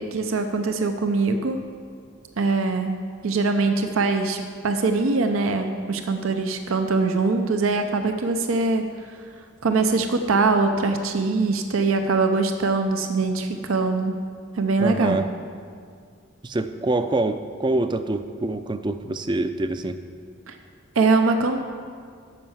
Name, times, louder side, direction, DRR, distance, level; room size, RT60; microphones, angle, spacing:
voice 1, 0.0-1.6 2.4-8.9 9.6-14.1 14.6-15.2 20.5-20.6 21.0-21.6, right 3 dB, 90° right, 6 dB, 0.6 m, -22 dB
voice 2, 14.8-15.3 16.4-20.0, right 2 dB, 20° right, 10 dB, 0.4 m, -25 dB
11.5 x 5.5 x 7.1 m, 2.1 s
head